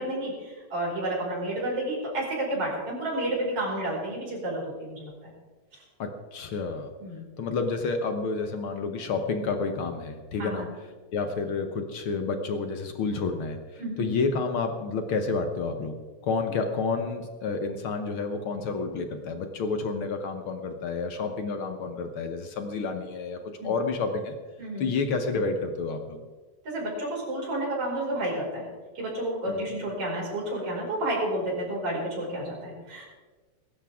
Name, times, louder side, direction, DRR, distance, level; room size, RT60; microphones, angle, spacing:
voice 1, 0.0-5.3 7.0-7.3 10.4-10.7 13.8-14.1 23.6-23.7 24.6-24.9 26.6-28.7 28.9-33.0, right 1 dB, 50° right, -4 dB, 6.4 m, -31 dB
voice 2, 6.0-6.9 7.4-10.6 11.1-16.0 16.2-24.3 24.8-26.2 29.5-29.7, left 4 dB, 60° left, 6 dB, 1.5 m, -30 dB
22.0 x 12.0 x 3.6 m, 1.3 s
omnidirectional pair, 3.4 m